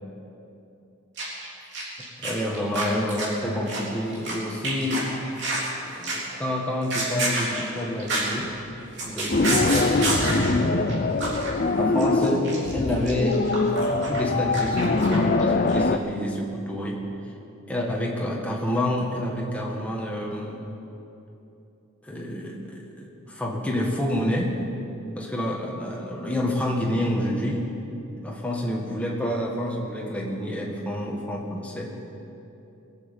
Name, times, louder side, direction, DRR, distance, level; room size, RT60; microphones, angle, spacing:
sound 1, 1.2-1.5 1.7-4.3 4.6-5.7 6.0-6.4 6.7-8.4 8.7-10.5 10.9-11.0 11.2-11.5 11.8-15.4 15.7-15.8, right 2 dB, 50° right, 3.6 m, -29 dB
voice 1, 2.2-5.1 6.0-8.5 9.0-11.0 11.8-13.4 13.9-17.0 17.7-20.6 22.0-24.6 25.2-27.6 28.2-31.9, left 1 dB, 5° left, -2 dB, 1.9 m, -28 dB
sound 2, 9.3-16.0, left 3 dB, 40° left, 0.5 m, -23 dB
21.5 x 7.8 x 8.2 m, 2.9 s
head